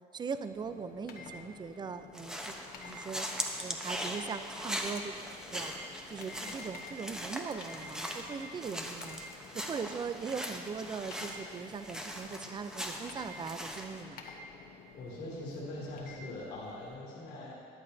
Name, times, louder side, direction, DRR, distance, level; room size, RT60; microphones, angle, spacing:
voice 1, 0.1-2.5 2.8-3.3 3.6-5.1 5.5-5.7 6.1-9.2 9.5-14.2, right 5 dB, 25° right, 11 dB, 0.4 m, -40 dB
sound 1, 0.5-17.0, left 3 dB, 60° left, 1.1 m, -50 dB
sound 2, 2.1-14.0, equal, 5° right, 0.9 m, -40 dB
voice 2, 15.0-17.5, left 1 dB, 85° left, -7 dB, 2.5 m, -42 dB
14.0 x 9.6 x 2.7 m, 2.5 s
cardioid pair, 110°, 17 cm